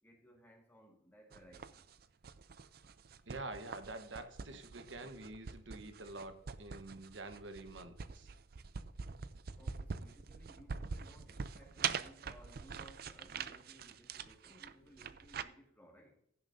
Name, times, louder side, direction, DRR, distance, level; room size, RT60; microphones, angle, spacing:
voice 1, 0.0-1.8 9.6-16.2, equal, 10° left, 1.9 m, -61 dB
sound 1, 1.3-15.4, right 6 dB, 50° right, 0.5 m, -44 dB
voice 2, 3.3-8.3, right 2 dB, 70° right, 1.2 m, -47 dB
16.0 x 6.9 x 2.7 m
head